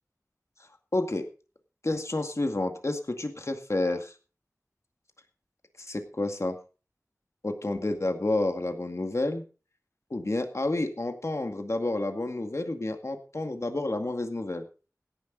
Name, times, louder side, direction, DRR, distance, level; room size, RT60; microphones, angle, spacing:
voice 1, 0.9-1.3 1.8-4.1 5.8-6.6 7.4-9.4 10.1-14.7, left 2 dB, 55° left, 6 dB, 2.0 m, -30 dB
16.5 x 10.5 x 4.0 m, 0.35 s
wide cardioid pair, 45°, 6 cm